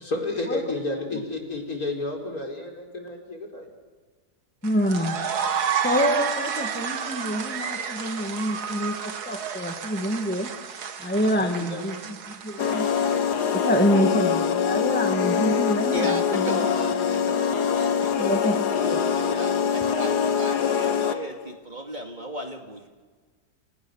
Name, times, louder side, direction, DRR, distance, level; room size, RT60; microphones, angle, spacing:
voice 1, 0.0-3.7 11.4-11.8, left 2 dB, 60° left, 1 dB, 5.2 m, -31 dB
voice 2, 4.6-5.2 5.8-10.5 11.0-12.9 13.5-16.7 17.2-17.3 18.1-19.0, equal, 5° left, 4 dB, 1.8 m, -26 dB
sound 1, 4.6-14.0, right 7 dB, 70° right, 1.9 m, -31 dB
sound 2, 12.6-21.3, left 7 dB, 80° left, 1.9 m, -24 dB
voice 3, 15.9-22.9, right 1 dB, 25° right, 3 dB, 2.5 m, -35 dB
30.0 x 28.5 x 6.5 m, 1.4 s
omnidirectional pair, 1.7 m